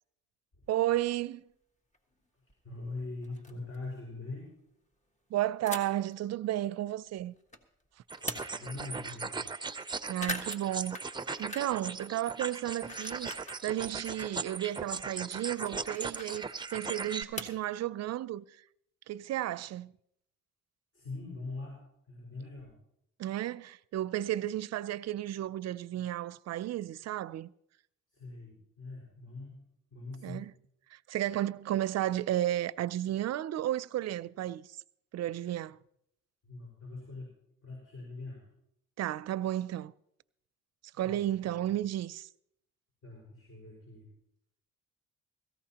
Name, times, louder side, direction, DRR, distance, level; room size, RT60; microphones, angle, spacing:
sound 1, 0.7-0.8 1.9-2.0 2.5-2.6 2.9-3.0 3.2-3.8 5.7-6.1 6.6-7.6 8.0-8.8 9.2-9.3 9.5-9.8 10.1-11.9 12.2-13.6 14.0-17.7, left 1 dB, 25° left, 1.6 m, -43 dB
voice 1, 0.7-1.4 5.3-7.3 10.1-11.0 11.4-13.3 13.6-18.4 19.1-19.9 23.2-27.5 30.2-30.5 30.9-34.7 35.1-35.8 39.0-39.9 41.0-42.3, right 13 dB, 60° right, 0.5 m, -33 dB
voice 2, 2.6-4.6 8.5-9.4 20.9-22.8 28.1-30.5 36.4-37.4 37.6-38.5 41.0-41.7 43.0-44.1, left 3 dB, 50° left, 5.2 m, -43 dB
sound 2, 8.1-17.2, right 4 dB, 15° right, 0.6 m, -38 dB
18.0 x 14.5 x 2.9 m
cardioid pair, 90°, 30 cm